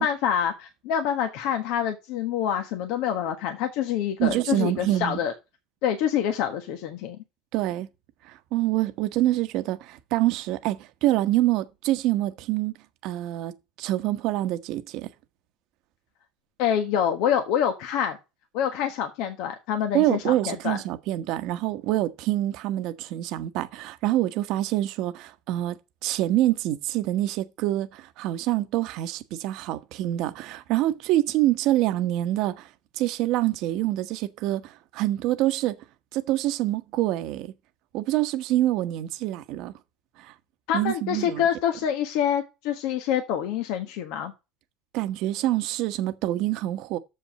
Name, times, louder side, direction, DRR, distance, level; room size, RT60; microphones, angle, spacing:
voice 1, 0.0-5.3 5.8-7.2 16.6-18.2 18.5-20.8 40.7-44.3, left 9 dB, 70° left, 1.4 m, -26 dB
voice 2, 4.2-5.2 7.5-7.9 8.2-12.7 13.0-15.1 19.9-25.8 26.0-32.7 32.9-35.8 36.1-37.5 37.9-39.7 40.2-40.3 40.7-41.4 44.9-47.0, right 15 dB, 60° right, 1.1 m, -26 dB
7.0 x 5.7 x 7.4 m
supercardioid pair, 125°, 0 cm